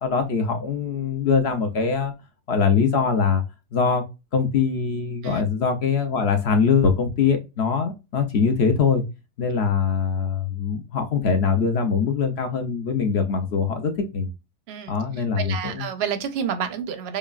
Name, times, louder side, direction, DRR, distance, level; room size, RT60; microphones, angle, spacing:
voice 1, 0.0-2.1 2.5-3.4 3.7-4.0 4.3-9.0 9.4-14.3 14.9-15.8, left 5 dB, 55° left, 0.8 m, -22 dB
voice 2, 14.7-17.2, right 8 dB, 60° right, 0.7 m, -30 dB
5.1 x 2.3 x 2.4 m
omnidirectional pair, 1.6 m